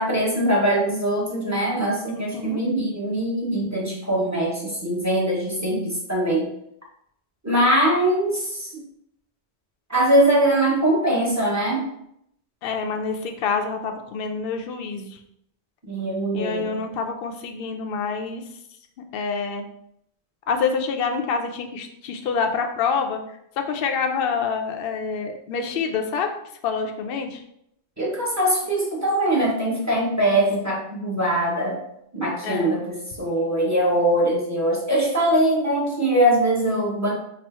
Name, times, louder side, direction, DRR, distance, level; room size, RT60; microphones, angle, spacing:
voice 1, 0.0-6.5 7.4-8.8 9.9-11.9 15.9-16.7 28.0-31.8 32.1-37.1, right 1 dB, 15° right, -4 dB, 0.8 m, -22 dB
voice 2, 2.1-2.6 12.6-15.2 16.3-18.4 19.1-19.6 20.5-23.2 23.7-26.3 26.6-27.4 32.4-32.8, left 5 dB, 65° left, 5 dB, 0.7 m, -27 dB
4.0 x 2.0 x 4.1 m, 0.75 s
omnidirectional pair, 1.2 m